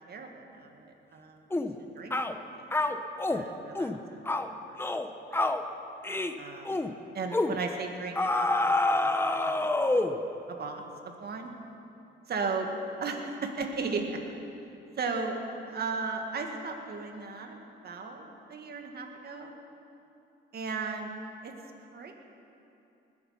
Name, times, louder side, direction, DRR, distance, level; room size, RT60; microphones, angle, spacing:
voice 1, 0.1-2.8 3.3-4.2 4.7-4.8 5.3-5.5 6.4-6.8 7.1-10.0 10.5-11.5 12.3-12.7 13.0-14.2 15.0-15.4 15.7-19.5 20.5-21.1 21.4-21.5 21.9-22.1, right 4 dB, 55° right, 3 dB, 1.9 m, -36 dB
sound 1, 1.5-1.7 2.1-2.3 2.7-3.4 3.8-4.0 4.3-4.5 4.8-5.1 5.3-5.6 6.0-6.3 6.7-6.9 7.3-7.6 8.2-10.2, left 2 dB, 10° left, 0.8 m, -27 dB
20.0 x 8.2 x 5.8 m, 2.7 s
cardioid pair, 90°, 20 cm